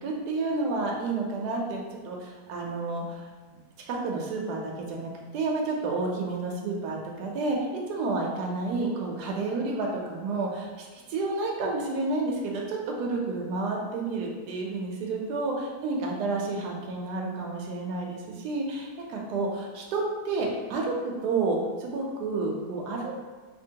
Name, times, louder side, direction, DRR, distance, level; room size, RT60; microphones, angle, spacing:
voice 1, 0.0-3.3 3.9-15.5 15.8-23.1, right 3 dB, 85° right, -1 dB, 1.2 m, -30 dB
4.4 x 2.7 x 2.8 m, 1.4 s
omnidirectional pair, 1.7 m